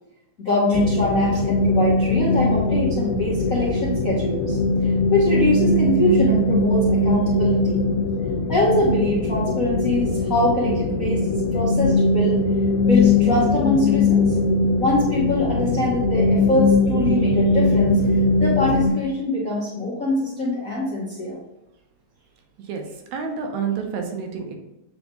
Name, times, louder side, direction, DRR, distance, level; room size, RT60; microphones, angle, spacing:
voice 1, 0.4-7.7 8.5-12.4 12.8-14.2 14.8-18.0 18.4-21.4, left 1 dB, 50° left, -7 dB, 1.0 m, -23 dB
sound 1, 0.7-18.9, left 2 dB, 85° left, 1.9 m, -20 dB
voice 2, 23.1-24.5, right 6 dB, 75° right, 3 dB, 2.2 m, -28 dB
7.7 x 3.6 x 3.7 m, 0.97 s
omnidirectional pair, 3.3 m